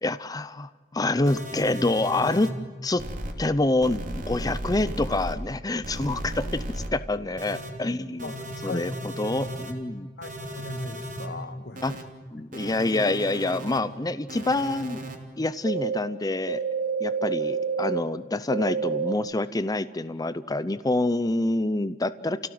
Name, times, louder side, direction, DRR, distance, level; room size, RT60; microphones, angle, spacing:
voice 1, 0.0-2.5 2.8-3.0 3.4-6.6 6.9-8.3 8.6-10.1 11.8-11.9 12.3-15.0 15.4-16.6 17.0-22.5, left 2 dB, 20° left, 13 dB, 0.6 m, -27 dB
sound 1, 1.3-2.5 3.0-3.3 3.8-5.3 5.8-6.9 7.4-7.7 8.2-9.7 10.2-11.3 11.8-12.0 12.5-13.8 14.3-15.2 15.7-16.0 16.5-18.0 18.5-19.1, right 3 dB, 50° right, 3.1 m, -32 dB
voice 2, 8.2-8.9 10.2-12.0 12.3-12.5, left 3 dB, 65° left, 10 dB, 1.7 m, -38 dB
29.5 x 17.0 x 7.8 m, 1.4 s
head